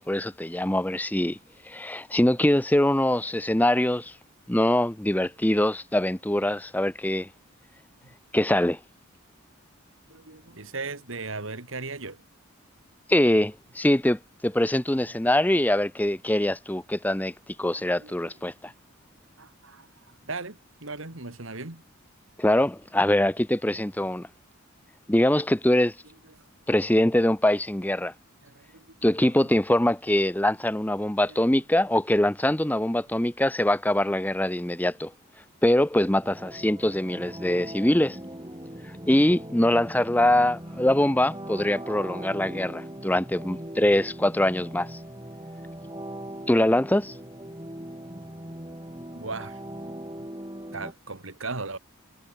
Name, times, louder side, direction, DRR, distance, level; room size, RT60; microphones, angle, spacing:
voice 1, 0.0-1.4 1.7-4.1 4.5-7.3 8.3-8.8 13.1-17.3 17.6-18.7 22.4-24.3 25.1-25.9 26.7-28.1 29.0-35.1 35.6-38.2 39.1-45.0 46.5-47.1, left 1 dB, 10° left, 0.8 m, -23 dB
voice 2, 10.1-12.2 17.8-18.3 19.4-19.9 20.2-21.8 28.4-29.0 29.3-29.5 31.3-31.4 49.1-49.6 50.2-50.3 50.7-51.8, right 3 dB, 75° right, 2.7 m, -37 dB
sound 1, 36.2-50.9, right 1 dB, 20° right, 6.0 m, -40 dB
head